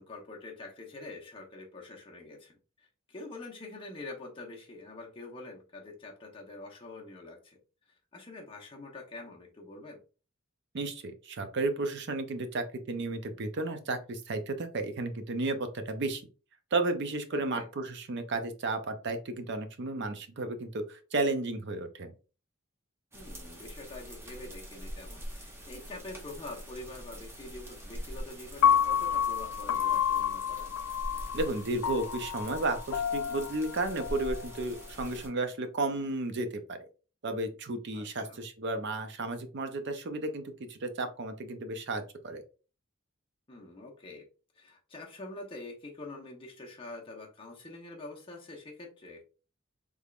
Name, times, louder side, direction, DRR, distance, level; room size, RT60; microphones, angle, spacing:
voice 1, 0.0-7.6 8.1-10.0 17.3-17.7 23.1-30.8 37.9-38.4 43.5-44.2 44.6-49.2, left 2 dB, 25° left, -1 dB, 0.9 m, -45 dB
voice 2, 10.7-16.2 16.7-22.1 31.3-36.8 37.2-40.4 40.7-42.4, right 2 dB, 55° right, 8 dB, 0.5 m, -33 dB
sound 1, 23.1-35.3, equal, 10° right, 0.8 m, -44 dB
Piano, 28.6-34.8, left 8 dB, 80° left, 0.3 m, -29 dB
3.4 x 3.3 x 2.4 m, 0.35 s
head